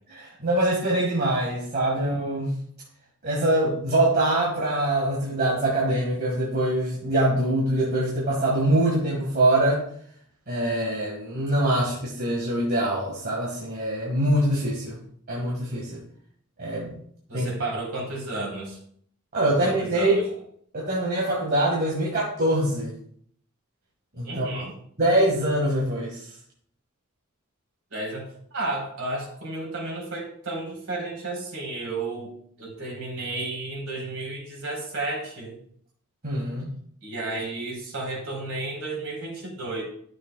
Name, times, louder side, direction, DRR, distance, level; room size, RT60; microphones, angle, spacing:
voice 1, 0.1-2.6 3.2-9.8 10.5-15.0 15.3-16.0 16.6-16.9 17.3-17.5 19.3-20.2 20.7-22.9 24.2-24.6 25.0-26.3 36.2-36.7, right 1 dB, 45° right, -3 dB, 1.7 m, -24 dB
voice 2, 17.3-18.8 19.5-20.2 24.2-24.7 27.9-28.3 28.5-32.3 32.6-35.6 37.0-39.8, right 2 dB, 70° right, -2 dB, 3.7 m, -32 dB
12.5 x 6.5 x 2.2 m, 0.63 s
head